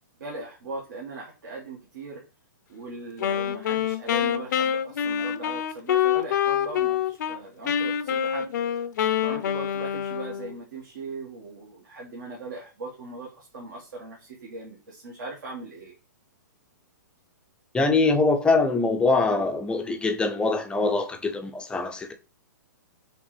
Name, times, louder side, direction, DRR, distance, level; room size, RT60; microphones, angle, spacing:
voice 1, 0.2-2.2 2.7-8.5 9.2-15.9, right 3 dB, 70° right, 1.5 m, -39 dB
Wind instrument woodwind instrument, 3.2-7.4 7.7-10.6, left 9 dB, 65° left, 0.5 m, -26 dB
voice 2, 17.7-22.1, left 3 dB, 10° left, 0.4 m, -23 dB
5.1 x 3.0 x 3.2 m
hypercardioid pair, 130°, 11 cm